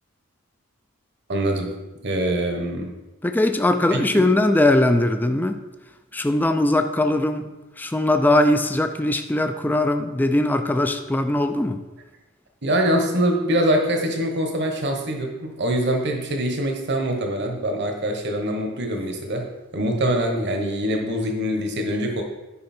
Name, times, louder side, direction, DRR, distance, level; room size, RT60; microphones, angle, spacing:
voice 1, 1.3-1.7 2.0-3.0 3.9-4.2 12.6-22.2, right 1 dB, 55° right, 3 dB, 1.1 m, -24 dB
voice 2, 3.2-5.6 6.1-7.5 7.8-11.8, left 1 dB, 10° left, 7 dB, 0.4 m, -20 dB
9.6 x 5.2 x 4.3 m, 1.1 s
head